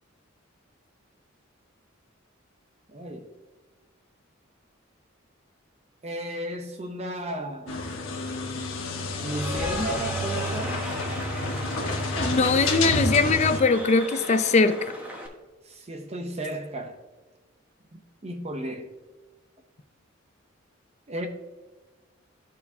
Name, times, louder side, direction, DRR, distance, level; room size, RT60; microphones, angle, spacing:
voice 1, 2.9-3.3 6.0-7.9 9.2-10.8 15.6-16.9 17.9-18.9 21.1-21.3, right 1 dB, 30° right, 4 dB, 0.7 m, -34 dB
sound 1, 7.7-13.6, left 2 dB, 80° left, 1.2 m, -29 dB
Cheering / Applause, 9.0-15.3, equal, 10° right, 1.2 m, -36 dB
voice 2, 12.2-14.8, left 4 dB, 35° left, 11 dB, 0.4 m, -21 dB
13.5 x 4.7 x 2.7 m, 1.2 s
head